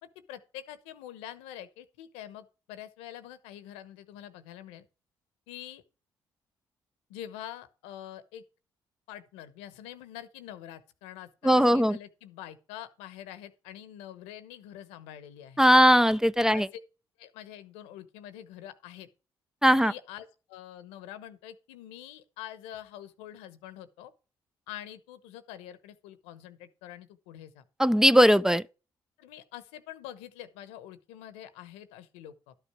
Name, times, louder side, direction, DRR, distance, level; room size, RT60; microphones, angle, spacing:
voice 1, 0.0-4.9 5.5-5.8 7.1-8.4 9.1-15.6 16.5-16.7 17.2-19.1 19.8-24.1 24.7-27.6 29.2-32.5, left 11 dB, 85° left, 1.0 m, -45 dB
voice 2, 11.4-12.0 15.6-16.7 19.6-19.9 27.8-28.6, equal, 5° right, 0.6 m, -19 dB
12.0 x 5.7 x 4.8 m
hypercardioid pair, 50°, 10 cm